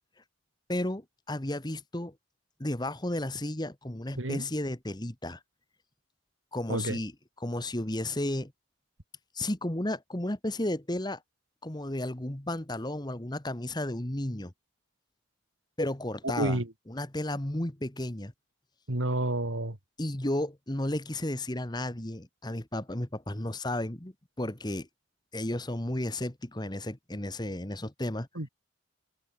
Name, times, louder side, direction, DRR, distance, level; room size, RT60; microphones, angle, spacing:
voice 1, 0.7-2.1 2.6-5.4 6.5-7.1 7.4-8.5 9.3-11.2 11.6-14.5 15.8-16.6 16.9-18.3 20.0-24.9 25.3-28.3, left 1 dB, 20° left, 1.4 m, -33 dB
voice 2, 16.4-16.7 18.9-19.8 28.3-28.5, right 1 dB, 70° right, 2.9 m, -30 dB
head